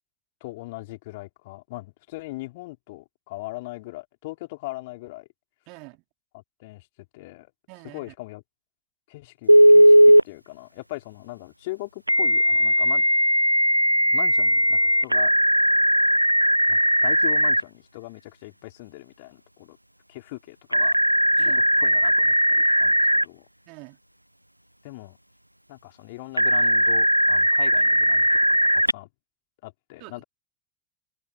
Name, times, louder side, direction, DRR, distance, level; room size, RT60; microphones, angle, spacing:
voice 1, 0.4-5.3 6.3-6.9 7.1-7.5 7.8-8.4 9.1-9.9 10.2-13.0 14.1-15.3 16.7-19.8 20.1-21.0 21.3-23.5 24.8-25.2 25.7-28.3 28.7-29.1 29.6-30.2, left 21 dB, 55° left, 4.9 m, -39 dB
voice 2, 5.7-6.0 7.7-8.1 21.4-21.6 23.7-24.0 30.0-30.2, right 32 dB, 50° right, 4.3 m, -45 dB
Telephone, 9.5-10.2 12.1-17.6 20.7-23.2 26.4-28.9, equal, 90° right, 0.3 m, -18 dB
figure-of-eight pair, 80°, 0 cm